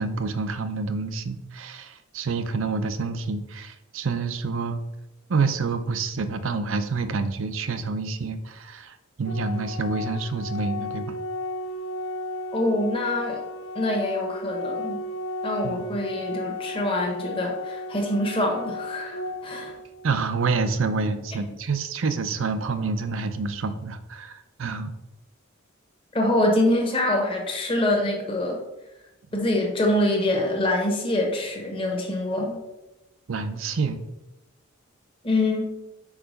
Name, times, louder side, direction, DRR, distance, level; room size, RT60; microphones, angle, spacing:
voice 1, 0.0-4.8 5.3-11.1 15.6-15.9 20.0-24.9 33.3-34.0, right 4 dB, 70° right, 10 dB, 0.6 m, -28 dB
Organ, 9.3-20.2, left 2 dB, 85° left, 0.6 m, -34 dB
voice 2, 12.5-13.4 13.7-15.0 15.4-19.7 26.1-28.6 29.3-32.6 35.2-35.7, left 1 dB, 25° left, 0 dB, 1.2 m, -25 dB
4.8 x 4.8 x 5.0 m, 0.96 s
head